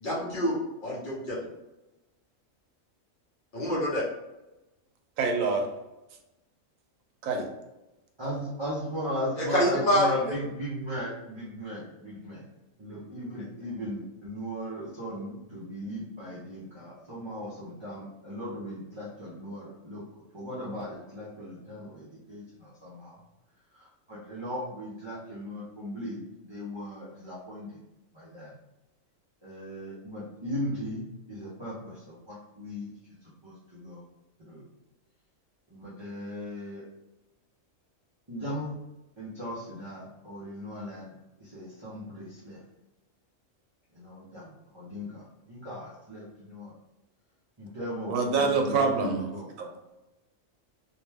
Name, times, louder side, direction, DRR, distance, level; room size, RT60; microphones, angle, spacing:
voice 1, 0.0-1.4 3.5-4.0 9.4-10.1, left 1 dB, 45° left, -6 dB, 0.9 m, -26 dB
voice 2, 5.2-5.7 7.2-7.5 48.1-49.7, right 4 dB, 85° right, 3 dB, 1.0 m, -26 dB
voice 3, 8.2-12.4 12.8-20.0 20.3-23.2 23.7-27.8 28.1-28.5 29.4-32.9 33.4-34.0 34.4-34.6 35.7-36.8 38.3-38.8 39.2-41.1 41.4-42.6 43.9-46.7 47.6-49.5, equal, 35° right, -10 dB, 0.5 m, -37 dB
2.7 x 2.1 x 3.3 m, 0.99 s
omnidirectional pair, 1.4 m